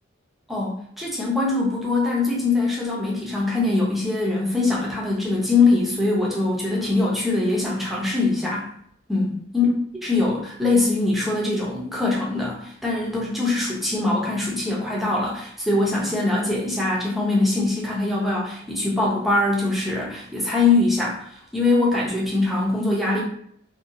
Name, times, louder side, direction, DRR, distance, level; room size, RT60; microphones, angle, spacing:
voice 1, 0.5-8.7 9.1-9.7 10.0-21.2 21.5-23.2, left 3 dB, ahead, -4 dB, 0.5 m, -22 dB
2.7 x 2.2 x 2.5 m, 0.66 s
head